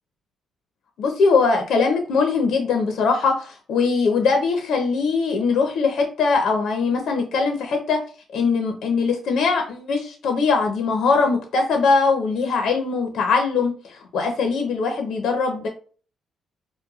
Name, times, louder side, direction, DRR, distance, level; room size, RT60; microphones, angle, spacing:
voice 1, 1.0-8.0 8.3-15.7, left 4 dB, 70° left, 4 dB, 0.7 m, -21 dB
4.7 x 2.2 x 2.3 m, 0.39 s
cardioid pair, 90°, 0 cm